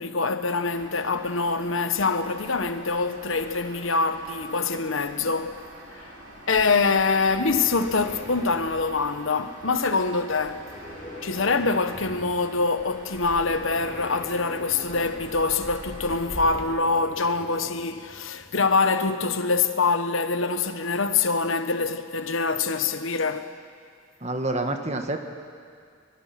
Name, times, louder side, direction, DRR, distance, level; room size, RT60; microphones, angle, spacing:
voice 1, 0.0-5.6 6.0-6.1 6.5-10.6 11.2-23.5, left 4 dB, 85° left, 1.1 m, -25 dB
sound 1, 0.6-16.6, right 1 dB, 80° right, 3.6 m, -44 dB
sound 2, 7.0-18.8, equal, 40° left, 5.2 m, -44 dB
voice 2, 24.2-25.2, right 2 dB, 35° right, 1.5 m, -27 dB
24.5 x 23.0 x 6.0 m
head